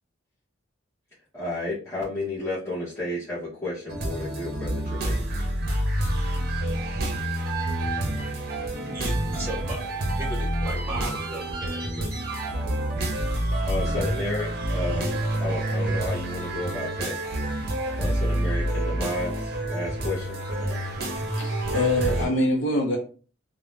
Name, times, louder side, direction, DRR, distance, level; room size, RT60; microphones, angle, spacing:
voice 1, 1.3-5.2 13.6-17.2 18.0-20.4, left 2 dB, 15° left, 0.8 m, -32 dB
sound 1, 3.9-22.3, right 1 dB, 50° right, 0.6 m, -28 dB
voice 2, 8.8-9.8 10.2-12.2, right 1 dB, 10° right, 1.0 m, -36 dB
voice 3, 21.4-23.0, left 1 dB, 70° left, 0.6 m, -24 dB
2.5 x 2.1 x 3.1 m
head